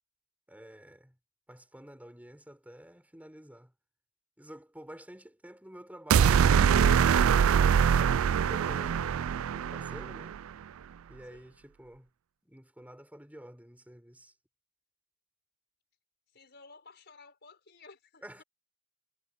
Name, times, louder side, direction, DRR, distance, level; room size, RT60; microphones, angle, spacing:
voice 1, 0.5-1.2 1.5-3.7 4.4-7.4 8.4-10.4 11.1-12.1 12.4-14.3 18.2-18.4, equal, 10° right, 4.3 m, -49 dB
sound 1, 6.1-10.4, right 7 dB, 80° right, 0.4 m, -23 dB
voice 2, 11.3-11.6 16.3-18.2, left 4 dB, 55° left, 4.9 m, -55 dB
head